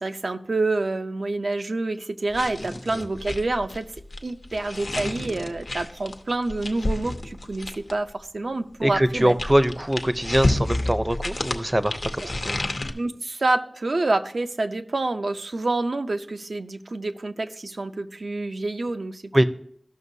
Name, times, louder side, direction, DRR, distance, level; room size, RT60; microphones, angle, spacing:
voice 1, 0.0-3.9 4.2-9.3 12.2-12.3 12.9-19.3, right 2 dB, 75° right, 7 dB, 0.5 m, -27 dB
sound 1, 2.3-8.1 8.9-12.9, left 2 dB, 70° left, 0.7 m, -30 dB
voice 2, 8.8-12.7 19.3-19.4, right 1 dB, 25° right, 11 dB, 0.5 m, -23 dB
14.0 x 5.9 x 2.7 m, 0.64 s
wide cardioid pair, 50°, 0 cm